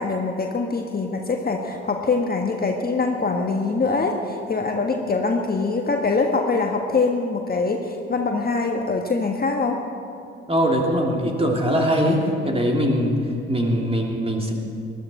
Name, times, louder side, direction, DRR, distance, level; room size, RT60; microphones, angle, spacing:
voice 1, 0.0-9.8, left 3 dB, 25° left, 3 dB, 1.4 m, -23 dB
voice 2, 10.5-13.2 13.5-14.5, equal, 15° right, 0 dB, 2.9 m, -21 dB
20.5 x 12.5 x 4.4 m, 2.6 s
figure-of-eight pair, 50°, 34 cm